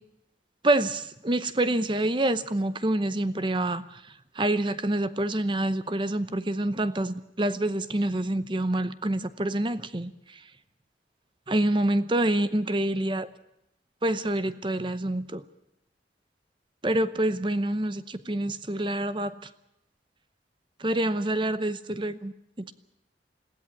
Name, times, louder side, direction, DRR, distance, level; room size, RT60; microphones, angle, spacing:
voice 1, 0.6-10.4 11.5-13.3 14.0-15.4 16.8-19.4 20.8-22.7, right 1 dB, 25° right, 13 dB, 0.8 m, -27 dB
21.5 x 16.5 x 8.5 m, 0.85 s
head